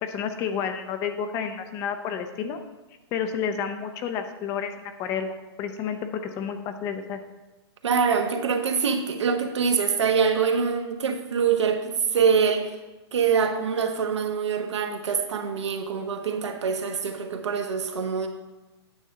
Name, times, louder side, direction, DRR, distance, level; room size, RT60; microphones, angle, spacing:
voice 1, 0.0-2.6 3.1-6.1 6.4-7.2, left 7 dB, 20° left, 8 dB, 0.5 m, -30 dB
voice 2, 7.8-12.8 13.1-18.3, right 6 dB, 85° right, 4 dB, 1.2 m, -24 dB
9.3 x 3.7 x 6.5 m, 1.1 s
hypercardioid pair, 150°, 14 cm